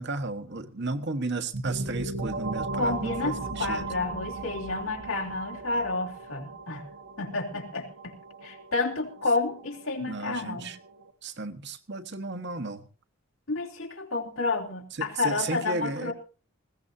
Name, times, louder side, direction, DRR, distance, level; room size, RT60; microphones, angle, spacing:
voice 1, 0.0-3.9 10.1-10.8 11.2-12.8 15.0-16.1, right 3 dB, 55° right, 7 dB, 1.4 m, -34 dB
sound 1, 1.5-11.1, right 3 dB, 85° right, 1.7 m, -37 dB
voice 2, 2.7-6.9 7.2-8.1 8.4-10.7 13.5-16.1, left 3 dB, 75° left, 2 dB, 3.7 m, -30 dB
20.5 x 17.0 x 2.8 m, 0.34 s
head